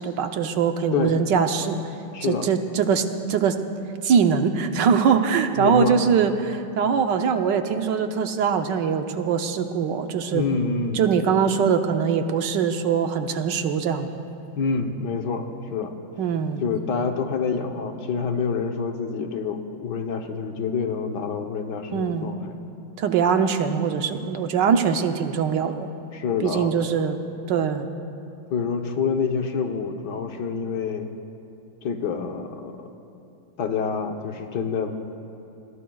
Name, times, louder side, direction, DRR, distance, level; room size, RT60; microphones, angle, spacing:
voice 1, 0.0-1.8 2.2-3.6 4.0-10.4 10.9-14.1 16.2-16.6 21.9-22.3 23.0-25.9 26.4-27.2 27.5-27.9, right 6 dB, 75° right, 7 dB, 1.4 m, -22 dB
voice 2, 2.1-2.5 5.6-6.0 10.3-11.0 14.6-16.0 16.6-22.5 26.1-26.8 28.5-31.1 31.8-32.9 33.6-34.9, left 5 dB, 65° left, 5 dB, 1.6 m, -27 dB
28.5 x 21.0 x 2.3 m, 2.8 s
omnidirectional pair, 2.0 m